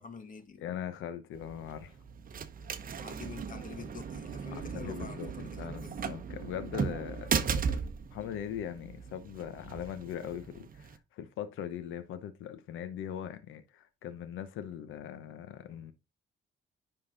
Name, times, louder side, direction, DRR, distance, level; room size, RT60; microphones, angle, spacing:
voice 1, 0.0-0.6 3.0-5.9, left 5 dB, 40° left, 1.9 m, -47 dB
voice 2, 0.6-2.0 4.5-7.8 8.1-15.9, left 9 dB, 85° left, 0.9 m, -40 dB
sound 1, 1.3-11.0, right 6 dB, 45° right, 0.9 m, -37 dB
9.9 x 3.9 x 3.9 m
cardioid pair, 90°, 20 cm